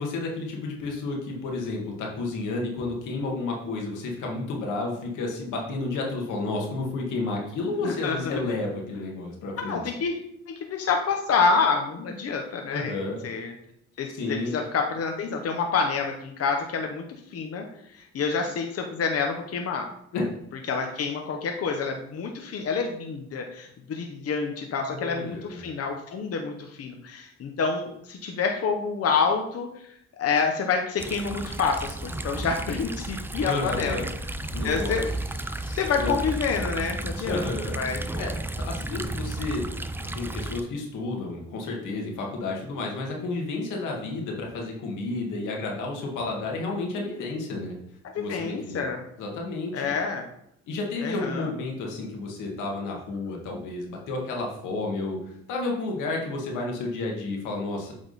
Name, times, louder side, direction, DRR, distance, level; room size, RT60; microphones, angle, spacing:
voice 1, 0.0-9.8 12.7-13.2 14.1-14.6 20.1-20.3 24.9-25.6 33.4-34.1 34.5-35.0 35.5-36.1 37.2-37.8 38.1-39.6 40.0-47.7 48.2-48.8 49.2-49.9 50.7-55.2 55.5-57.9, left 3 dB, 90° left, 0 dB, 1.7 m, -31 dB
voice 2, 7.8-8.4 9.6-10.2 10.6-12.9 13.2-13.5 14.0-17.0 17.3-19.9 20.7-29.9 30.2-34.0 34.6-35.1 35.8-37.4 37.7-38.1 48.1-49.0 49.7-50.2 51.0-51.5, left 5 dB, 50° left, 3 dB, 0.9 m, -28 dB
sound 1, 31.0-40.6, right 2 dB, 10° right, 0.3 m, -33 dB
8.1 x 3.7 x 4.0 m, 0.74 s
cardioid pair, 90°, 30 cm